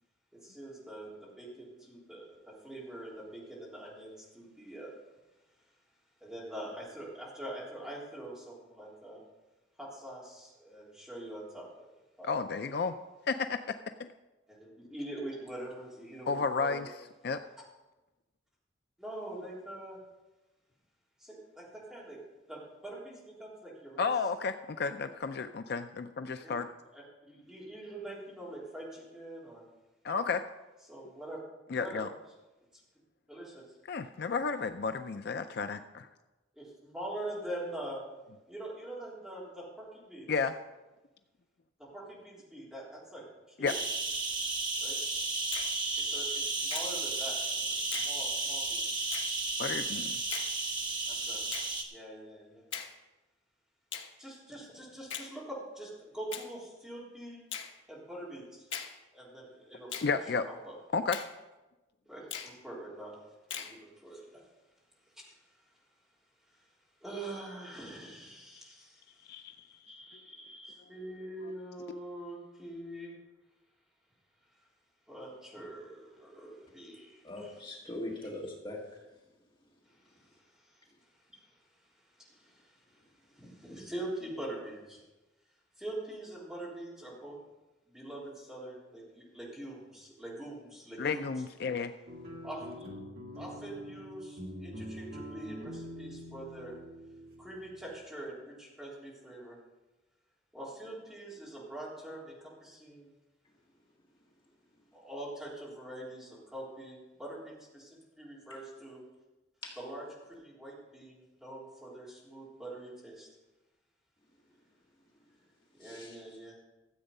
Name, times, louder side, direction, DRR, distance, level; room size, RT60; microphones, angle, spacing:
voice 1, 0.3-4.9 6.2-9.2 9.8-11.9 12.2-12.3 14.5-16.9 19.0-20.0 21.2-22.2 22.5-24.1 26.4-26.5 26.9-29.6 30.9-31.4 31.8-32.1 33.3-33.6 36.5-38.0 38.5-40.3 41.8-43.7 44.8-45.0 46.0-47.4 47.6-48.8 51.1-51.4 51.9-52.6 54.2-57.4 57.9-58.7 59.1-60.2 60.6-60.8 62.1-63.2 63.5-64.4 65.2-65.3 66.5-66.6 67.0-69.1 69.3-69.4 69.9-73.1 75.1-77.6 80.1-80.8 81.3-81.6 82.0-85.0 85.8-87.4 87.9-91.2 92.4-92.9 93.4-96.8 97.4-99.6 100.5-103.1 104.9-109.0 109.8-113.3 115.7-116.5, right 1 dB, 5° right, -6 dB, 3.6 m, -44 dB
voice 2, 12.2-12.9 13.3-13.6 14.0-14.1 16.3-16.9 17.2-17.4 24.0-26.7 30.0-30.4 31.7-32.1 33.9-36.1 40.3-40.5 43.6-43.7 49.6-50.2 60.0-60.5 60.9-61.2 68.5-68.6 69.3-69.6 91.0-91.9, left 5 dB, 55° left, 8 dB, 0.4 m, -32 dB
sound 1, 43.7-51.8, right 3 dB, 25° right, 1.4 m, -33 dB
Finger snapping, 45.5-45.7 46.7-46.9 47.9-48.1 49.1-49.3 50.3-50.5 51.5-51.7 52.7-52.9 53.9-54.1 55.1-55.3 56.3-56.5 57.5-57.7 58.7-58.9 59.9-60.1 61.1-61.3 62.3-62.5 63.5-63.7, left 8 dB, 75° left, 1.2 m, -39 dB
voice 3, 77.2-79.0 109.6-109.7 115.8-116.2, left 1 dB, 25° left, -2 dB, 1.7 m, -41 dB
sound 2, 92.1-98.0, equal, 50° right, 1.9 m, -45 dB
13.5 x 7.9 x 5.4 m, 1.1 s
head